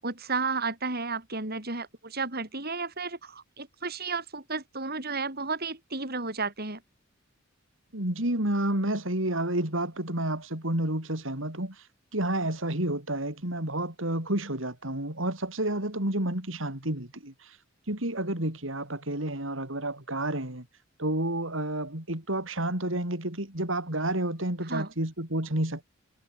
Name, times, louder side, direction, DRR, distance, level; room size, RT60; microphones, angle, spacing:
voice 1, 0.0-6.8 24.7-24.9, right 4 dB, 50° right, 7.1 m, -33 dB
voice 2, 7.9-11.9 12.1-17.6 17.9-20.7 21.0-25.8, right 1 dB, 65° right, 5.4 m, -30 dB
head